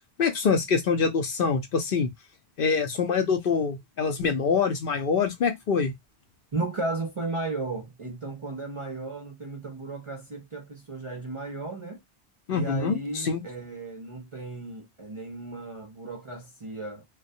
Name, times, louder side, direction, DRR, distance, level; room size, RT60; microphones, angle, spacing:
voice 1, 0.2-2.1 2.6-5.9 12.5-13.4, left 5 dB, 60° left, 0.7 m, -25 dB
voice 2, 6.5-12.0 12.5-17.0, right 3 dB, 40° right, 0.4 m, -35 dB
2.3 x 2.1 x 2.5 m
omnidirectional pair, 1.1 m